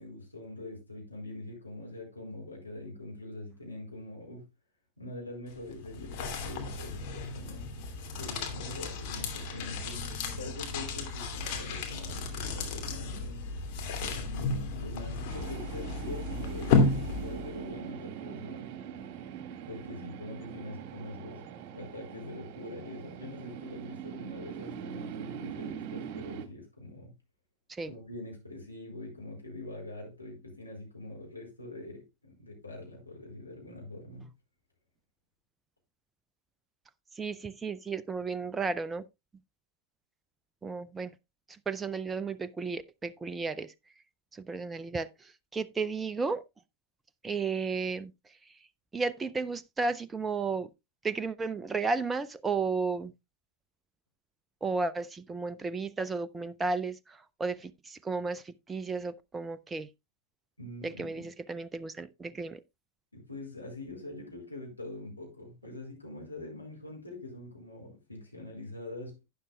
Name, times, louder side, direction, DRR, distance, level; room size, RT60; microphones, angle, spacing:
voice 1, 0.0-4.4 5.0-7.6 8.1-13.4 14.1-18.7 19.7-27.1 27.8-34.3 60.6-61.2 63.1-69.2, left 2 dB, 85° left, 4.9 m, -44 dB
sound 1, 5.5-17.6, left 3 dB, 45° left, 2.5 m, -33 dB
sound 2, 15.3-26.5, right 9 dB, 45° right, 1.8 m, -42 dB
voice 2, 37.2-39.0 40.6-41.1 41.7-43.7 44.3-46.4 47.2-48.1 48.9-50.7 51.0-53.1 54.6-59.9 60.8-62.6, right 4 dB, 15° right, 0.5 m, -33 dB
12.0 x 9.6 x 2.3 m
figure-of-eight pair, 90°, 0 cm